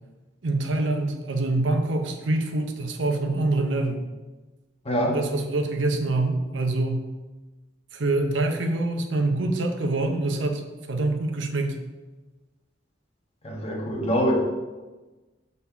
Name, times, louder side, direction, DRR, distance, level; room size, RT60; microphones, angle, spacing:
voice 1, 0.4-4.0 5.1-7.1 7.9-11.8, right 2 dB, 70° right, 4 dB, 0.9 m, -25 dB
voice 2, 4.8-5.2 13.4-14.3, equal, 35° left, 0 dB, 1.3 m, -24 dB
6.6 x 4.2 x 5.7 m, 1.2 s
head